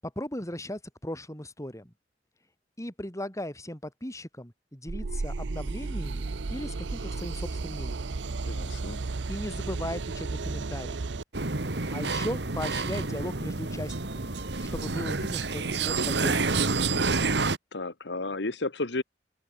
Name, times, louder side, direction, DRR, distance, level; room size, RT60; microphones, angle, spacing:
voice 1, 0.0-1.9 2.8-8.1 9.3-11.1 11.9-16.8, left 1 dB, 20° left, 6.6 m, -37 dB
sound 1, 4.9-11.2, right 3 dB, 85° right, 0.7 m, -33 dB
voice 2, 8.4-9.0 17.7-19.0, left 2 dB, 75° left, 1.7 m, -32 dB
sound 2, 11.3-17.6, right 3 dB, 70° right, 1.6 m, -28 dB
open air
head